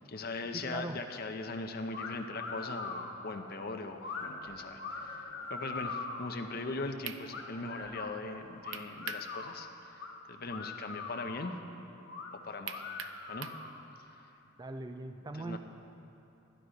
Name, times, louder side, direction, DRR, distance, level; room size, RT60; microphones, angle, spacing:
voice 1, 0.0-11.5 12.4-12.8 13.3-13.5 14.1-14.3 15.4-15.6, left 3 dB, 50° left, 6 dB, 0.8 m, -40 dB
voice 2, 0.5-1.0 14.6-15.6, right 2 dB, 20° right, 7 dB, 0.4 m, -40 dB
sound 1, 1.9-2.1 2.4-3.1 4.0-4.3 4.8-6.3 7.3-8.1 8.6-9.6 10.0-10.1 10.5-11.5 12.1-12.3 12.7-13.8, left 4 dB, 85° left, 1.5 m, -41 dB
sound 2, 3.3-8.8, left 1 dB, ahead, 3.5 m, -58 dB
sound 3, 6.6-6.7 7.0-7.2 8.7-9.3 9.7-9.8 12.7-13.6, right 8 dB, 75° right, 0.6 m, -41 dB
12.0 x 11.5 x 5.2 m, 2.9 s
head